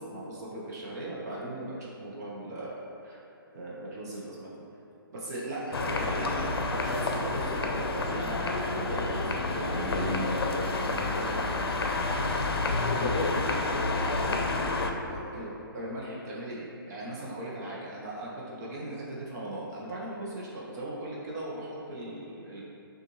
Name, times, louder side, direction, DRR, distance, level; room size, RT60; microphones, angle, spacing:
voice 1, 0.0-3.2 3.5-4.5 5.1-11.5 12.9-13.1 15.1-22.6, right 1 dB, 45° right, -6 dB, 0.9 m, -38 dB
sound 1, 5.7-14.9, left 3 dB, 90° left, 0.5 m, -29 dB
voice 2, 12.7-15.3, equal, 10° left, -9 dB, 1.5 m, -43 dB
6.6 x 2.6 x 3.0 m, 2.8 s
hypercardioid pair, 145°, 12 cm